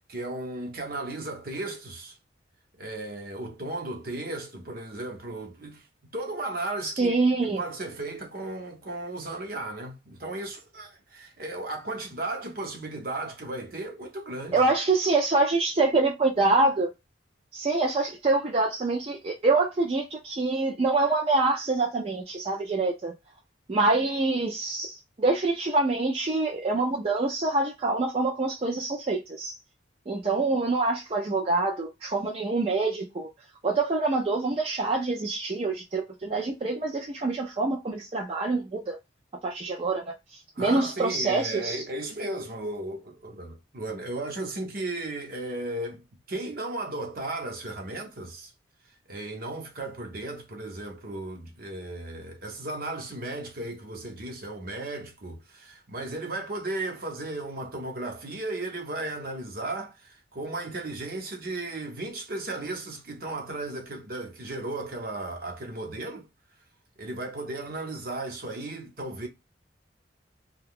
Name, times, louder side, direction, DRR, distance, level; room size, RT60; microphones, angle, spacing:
voice 1, 0.1-2.2 2.8-5.8 6.1-7.2 7.4-14.6 40.5-48.5 49.1-66.3 67.0-69.3, right 2 dB, 50° right, 0.8 m, -35 dB
voice 2, 6.8-7.6 14.5-16.9 17.5-23.1 23.7-29.6 30.1-33.3 33.6-39.0 39.4-41.8, right 3 dB, 30° right, 0.4 m, -26 dB
2.7 x 2.2 x 3.6 m
head